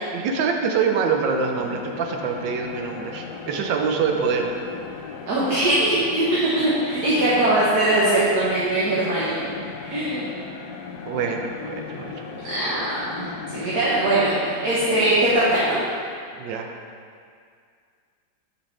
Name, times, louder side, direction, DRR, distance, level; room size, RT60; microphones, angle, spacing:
voice 1, 0.1-4.5 11.1-12.3 16.4-16.7, right 5 dB, 75° right, 3 dB, 1.3 m, -25 dB
sound 1, 0.8-16.1, left 5 dB, 70° left, 1.0 m, -37 dB
voice 2, 5.3-9.5 9.8-10.3 12.5-12.8 13.1-15.8, right 1 dB, 55° right, -8 dB, 1.5 m, -21 dB
9.9 x 5.4 x 3.2 m, 2.2 s
omnidirectional pair, 2.1 m